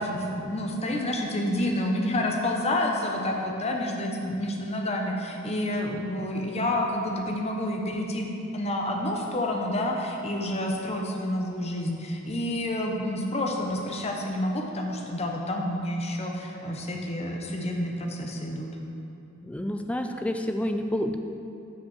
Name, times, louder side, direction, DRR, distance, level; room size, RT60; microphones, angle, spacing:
voice 1, 0.0-8.3 8.5-18.7, left 1 dB, 30° left, 1 dB, 0.8 m, -29 dB
voice 2, 19.4-21.2, left 1 dB, 5° left, 5 dB, 0.3 m, -29 dB
5.8 x 5.2 x 6.4 m, 2.8 s
head